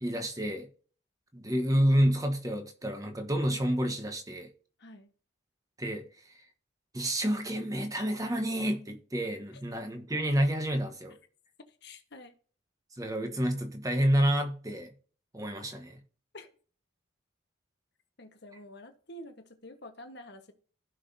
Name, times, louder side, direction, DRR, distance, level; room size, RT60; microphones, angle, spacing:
voice 1, 0.0-0.7 1.3-4.5 5.8-6.3 6.9-11.1 13.0-14.9 15.3-16.0, equal, 15° right, 1.2 m, -29 dB
voice 2, 4.8-5.1 9.5-9.6 11.7-12.4 16.3-16.5 18.2-20.5, left 1 dB, 55° left, 1.2 m, -48 dB
15.5 x 5.8 x 2.7 m
head